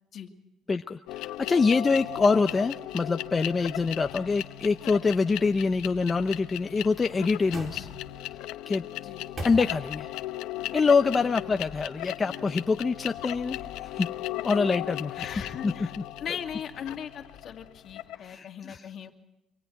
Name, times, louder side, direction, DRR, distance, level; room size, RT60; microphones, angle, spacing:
voice 1, 0.7-7.9 8.7-8.8 9.4-10.1 10.7-14.1 14.4-15.3 15.6-15.7 18.2-18.9, left 4 dB, 25° left, 7 dB, 0.7 m, -25 dB
sound 1, 1.1-18.3, left 14 dB, 85° left, 0.8 m, -37 dB
sound 2, 6.6-8.3 8.9-10.2 10.5-10.6, right 2 dB, 35° right, 4.3 m, -42 dB
voice 2, 11.2-11.6 15.1-15.9 16.2-19.1, left 8 dB, 50° left, 4 dB, 2.4 m, -39 dB
25.5 x 25.0 x 4.7 m, 0.91 s
cardioid pair, 135°, 0 cm